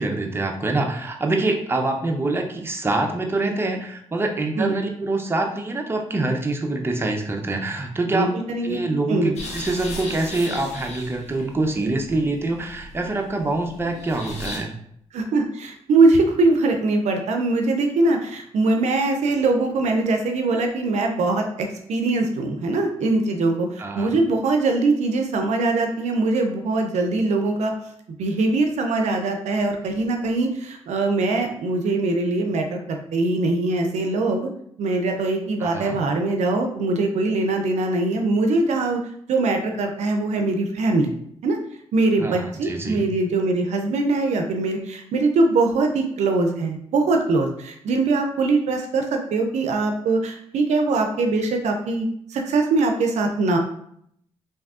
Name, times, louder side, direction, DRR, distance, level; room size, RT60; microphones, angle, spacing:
voice 1, 0.0-8.3 8.6-14.7 23.8-24.2 35.6-36.0 42.2-43.1, right 2 dB, 20° right, 2 dB, 0.5 m, -25 dB
voice 2, 8.1-8.8 9.1-9.3 15.1-27.7 28.2-34.5 34.8-39.0 39.3-41.1 41.4-41.6 41.9-53.6, right 3 dB, 70° right, 4 dB, 0.4 m, -22 dB
sound 1, 9.4-14.6, left 2 dB, 65° left, 0.8 m, -37 dB
3.4 x 2.7 x 2.4 m, 0.70 s
supercardioid pair, 60°, 12 cm